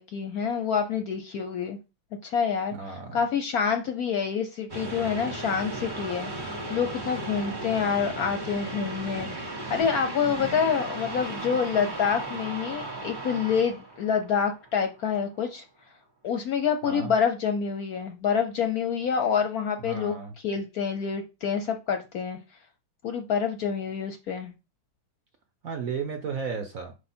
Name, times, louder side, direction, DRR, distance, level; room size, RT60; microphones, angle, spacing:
voice 1, 0.0-1.8 2.2-2.7 3.1-15.6 16.2-20.2 20.4-22.4 23.0-24.5, left 6 dB, 65° left, 0.9 m, -27 dB
voice 2, 2.7-3.2 7.6-8.2 16.8-17.1 19.8-20.3 25.6-26.9, right 5 dB, 60° right, 0.9 m, -35 dB
sound 1, 4.7-14.9, right 2 dB, 30° right, 1.2 m, -36 dB
4.9 x 4.9 x 4.3 m
omnidirectional pair, 2.2 m